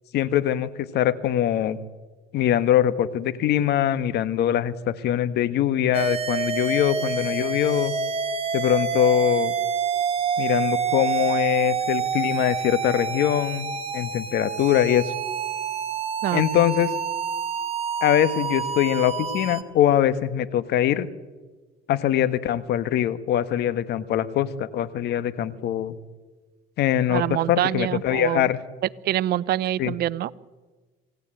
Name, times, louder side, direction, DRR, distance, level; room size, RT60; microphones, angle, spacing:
voice 1, 0.1-1.8 2.3-7.9 8.5-9.5 10.4-13.7 13.9-15.1 16.3-16.9 18.0-21.1 21.9-25.9 26.8-28.6 29.8-29.9, left 11 dB, 60° left, 13 dB, 1.6 m, -22 dB
sound 1, 5.9-19.6, right 6 dB, 30° right, 2.2 m, -27 dB
voice 2, 27.1-28.5 29.0-30.3, right 13 dB, 55° right, 20 dB, 0.7 m, -25 dB
26.0 x 17.0 x 9.0 m, 1.3 s
supercardioid pair, 90°, 19 cm